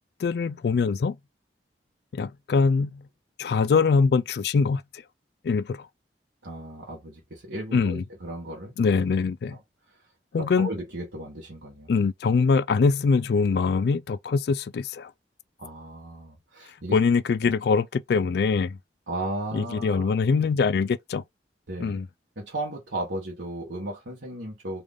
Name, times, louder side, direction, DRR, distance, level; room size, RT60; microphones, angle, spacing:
voice 1, 0.2-1.2 2.1-3.0 3.4-5.0 5.4-5.9 7.7-8.0 8.8-9.6 10.3-10.7 11.9-15.1 16.9-18.8 19.5-21.2 21.8-22.1, left 5 dB, 60° left, 0.3 m, -23 dB
voice 2, 6.4-9.0 9.5-9.6 10.4-11.9 15.6-17.0 17.4-17.5 19.1-20.1 21.7-22.0 22.4-24.8, right 1 dB, 85° right, 1.2 m, -35 dB
3.2 x 2.5 x 3.5 m
head